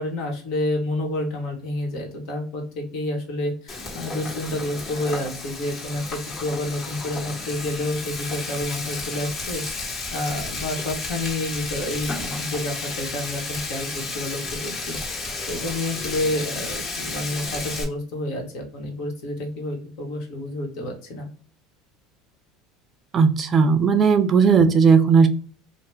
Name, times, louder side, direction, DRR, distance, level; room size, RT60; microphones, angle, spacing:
voice 1, 0.0-15.0 15.5-21.3, left 1 dB, 65° left, 1 dB, 1.2 m, -29 dB
Frying (food), 3.7-17.8, left 3 dB, 45° left, 1.5 m, -32 dB
voice 2, 23.1-25.3, right 5 dB, 35° right, 8 dB, 0.4 m, -16 dB
2.7 x 2.1 x 3.3 m, 0.40 s
supercardioid pair, 105°, 0 cm